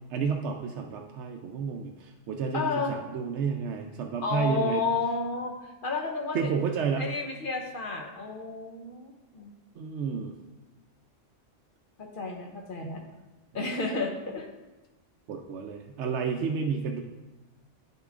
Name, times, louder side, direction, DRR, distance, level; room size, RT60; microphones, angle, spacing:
voice 1, 0.1-4.8 6.3-7.1 9.8-10.3 12.8-12.9 15.3-17.0, right 6 dB, 75° right, 2 dB, 0.9 m, -31 dB
voice 2, 2.5-2.9 4.2-6.5 7.0-9.5 12.0-13.0 13.5-14.5, left 4 dB, 50° left, 2 dB, 1.0 m, -31 dB
9.5 x 6.6 x 2.5 m, 1.1 s
omnidirectional pair, 1.2 m